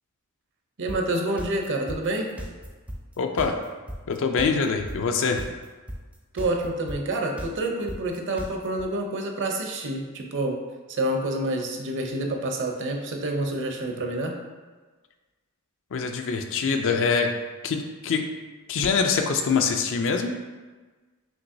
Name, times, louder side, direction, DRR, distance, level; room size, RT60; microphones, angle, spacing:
voice 1, 0.8-2.3 6.3-10.6 10.9-14.3, right 1 dB, 55° right, 2 dB, 0.6 m, -28 dB
sound 1, 0.9-8.8, equal, 5° right, 0.4 m, -36 dB
voice 2, 3.2-3.5 4.1-5.4 15.9-17.3 17.6-18.2 18.7-20.4, left 5 dB, 60° left, 5 dB, 0.4 m, -24 dB
6.0 x 3.0 x 2.6 m, 1.3 s
head